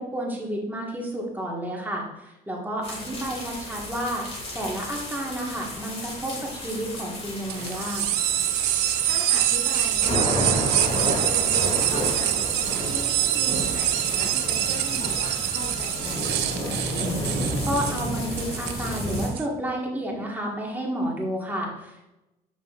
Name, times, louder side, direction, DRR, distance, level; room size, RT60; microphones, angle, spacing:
voice 1, 0.0-8.1 17.7-22.0, right 1 dB, 10° right, -2 dB, 1.5 m, -31 dB
sound 1, 2.8-19.3, equal, 35° left, 2.3 m, -31 dB
sound 2, 7.5-19.4, right 13 dB, 90° right, 0.5 m, -25 dB
voice 2, 9.0-17.0, left 2 dB, 70° left, 0 dB, 2.2 m, -39 dB
8.0 x 6.1 x 2.4 m, 0.99 s
cardioid pair, 110°, 17 cm